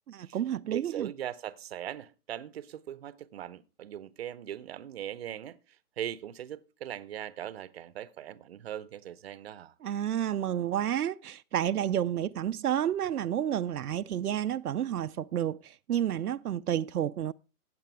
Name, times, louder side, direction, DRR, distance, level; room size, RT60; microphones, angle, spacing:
voice 1, 0.1-1.1 9.8-17.3, right 10 dB, 80° right, 0.6 m, -30 dB
voice 2, 0.7-5.6 6.0-9.7, right 10 dB, 45° right, 0.8 m, -40 dB
15.5 x 8.6 x 3.3 m
hypercardioid pair, 145°, 45 cm